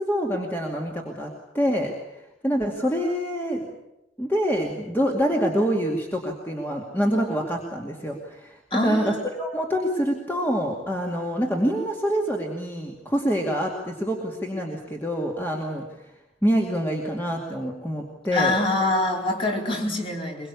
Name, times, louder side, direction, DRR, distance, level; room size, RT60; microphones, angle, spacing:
voice 1, 0.0-1.9 2.4-3.6 4.2-16.1 16.4-18.5, equal, 10° left, 0 dB, 2.3 m, -26 dB
voice 2, 8.7-9.2 18.3-20.5, left 2 dB, 30° left, 1 dB, 4.2 m, -24 dB
23.0 x 23.0 x 8.4 m, 0.91 s
head